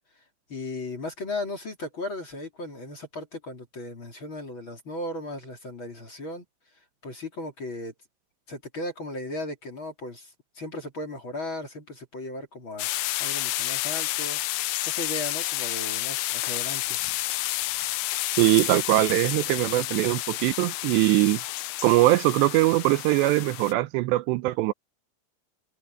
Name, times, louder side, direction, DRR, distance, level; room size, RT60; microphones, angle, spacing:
voice 1, 0.5-6.4 7.0-7.9 8.5-12.9 13.2-14.4 14.8-17.0, left 2 dB, 30° left, 3.3 m, -36 dB
sound 1, 12.8-23.7, left 16 dB, 75° left, 2.4 m, -30 dB
voice 2, 18.4-21.4 21.8-24.7, right 18 dB, 80° right, 2.8 m, -22 dB
omnidirectional pair, 5.1 m